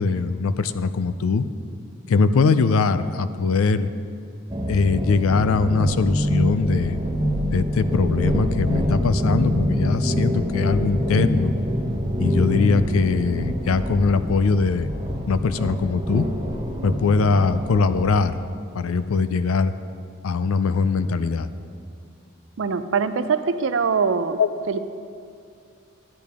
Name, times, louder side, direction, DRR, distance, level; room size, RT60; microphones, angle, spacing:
voice 1, 0.0-1.4 2.1-3.9 4.7-7.0 7.5-11.5 12.2-14.9 15.3-16.3 16.8-18.4 18.7-19.7 20.2-21.5 24.4-24.5, left 4 dB, 80° left, 12 dB, 0.4 m, -21 dB
sound 1, 4.5-18.1, equal, 20° right, 0.9 m, -25 dB
voice 2, 22.6-24.4 24.7-24.8, right 5 dB, 65° right, 11 dB, 0.4 m, -22 dB
12.0 x 8.5 x 3.6 m, 2.5 s
head